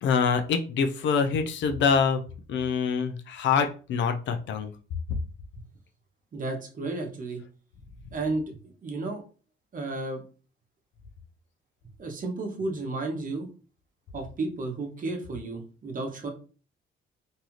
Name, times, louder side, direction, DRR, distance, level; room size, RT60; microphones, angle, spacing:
voice 1, 0.0-2.2 2.5-4.7, left 6 dB, 70° left, 6 dB, 0.5 m, -25 dB
voice 2, 6.3-7.4 8.1-9.2 9.7-10.2 12.0-13.5 14.1-16.3, right 3 dB, 45° right, 2 dB, 0.8 m, -32 dB
2.7 x 2.3 x 3.0 m, 0.38 s
cardioid pair, 90°, 20 cm